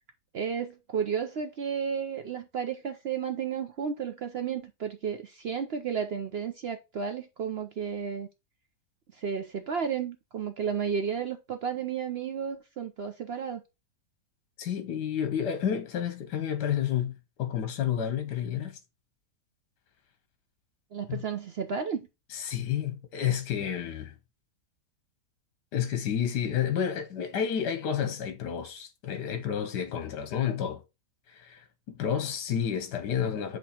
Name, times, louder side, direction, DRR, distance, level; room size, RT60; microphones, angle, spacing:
voice 1, 0.3-8.3 9.1-13.6 20.9-22.1, right 7 dB, 75° right, 0.5 m, -32 dB
voice 2, 14.6-17.1 17.4-18.8 21.1-21.2 22.3-24.1 25.7-30.8 31.3-33.6, left 9 dB, 80° left, 1.4 m, -30 dB
7.9 x 3.0 x 4.3 m
omnidirectional pair, 1.8 m